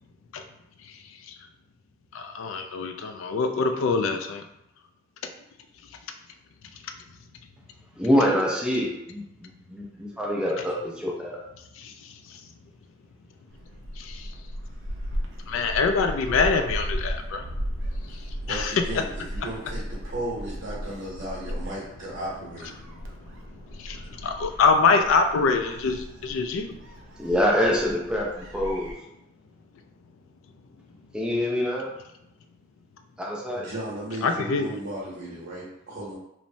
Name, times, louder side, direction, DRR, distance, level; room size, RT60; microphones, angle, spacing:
voice 1, 0.8-1.4 2.1-4.4 11.8-12.4 13.9-14.4 15.5-17.5 17.9-19.0 23.3-26.7 34.2-34.7, left 4 dB, 90° left, 6 dB, 0.3 m, -25 dB
voice 2, 8.0-11.4 27.2-28.9 31.1-32.0 33.2-33.7, equal, 5° right, -3 dB, 0.4 m, -25 dB
Gull seagull, 13.5-28.9, equal, 75° right, 0.5 m, -36 dB
voice 3, 18.5-22.7 33.5-36.1, right 1 dB, 60° right, -8 dB, 0.8 m, -35 dB
3.0 x 2.0 x 2.6 m, 0.83 s
head